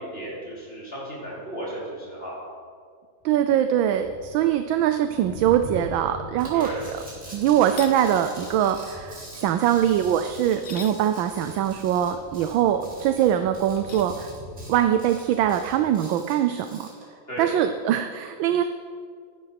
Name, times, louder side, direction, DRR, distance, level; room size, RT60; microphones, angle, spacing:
voice 1, 0.0-2.4 6.5-6.8 17.3-17.6, right 1 dB, 30° left, -7 dB, 5.1 m, -34 dB
sound 1, 3.2-15.9, left 1 dB, 10° right, 4.7 m, -44 dB
voice 2, 3.2-6.7 7.3-14.3 14.7-16.9 17.4-18.6, right 10 dB, 80° right, 8 dB, 1.4 m, -22 dB
sound 2, 6.4-17.0, right 1 dB, 35° right, 4.6 m, -46 dB
sound 3, 7.8-8.0 10.5-11.0 13.8-14.1, left 6 dB, 65° left, 0.5 m, -39 dB
16.0 x 11.0 x 5.9 m, 2.1 s
omnidirectional pair, 2.2 m